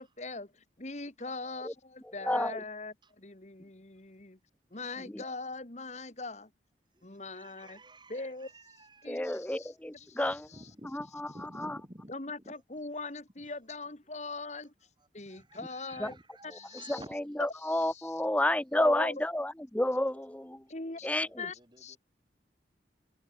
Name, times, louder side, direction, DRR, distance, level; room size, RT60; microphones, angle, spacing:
voice 1, 0.0-4.4 4.7-6.5 7.0-7.8 8.1-8.5 9.0-10.6 12.1-14.7 15.1-16.2 16.4-17.0 17.6-18.1 18.7-19.1 20.7-21.1 21.4-22.0, left 3 dB, 40° left, 1.9 m, -41 dB
voice 2, 2.2-2.6 5.1-5.2 9.1-10.5 10.9-11.3 11.6-11.8 16.0-16.1 16.9-20.6 21.0-21.3, left 1 dB, 10° left, 0.6 m, -30 dB
voice 3, 6.9-9.7 10.0-12.1 12.4-12.6 13.4-13.5 15.0-17.2 17.8-17.9 20.9-22.0, right 1 dB, 25° right, 7.0 m, -52 dB
head